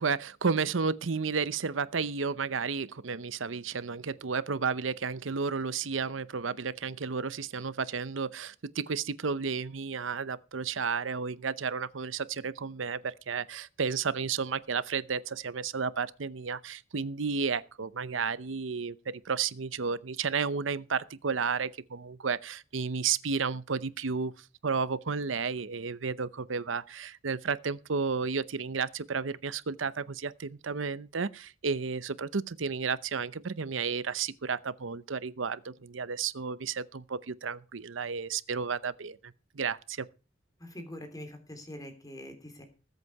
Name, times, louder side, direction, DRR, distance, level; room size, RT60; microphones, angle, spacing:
voice 1, 0.0-19.0 19.2-24.3 24.6-40.1, right 5 dB, 90° right, 0.8 m, -32 dB
voice 2, 40.6-42.6, left 1 dB, 20° left, 3.2 m, -44 dB
20.0 x 8.2 x 4.8 m
head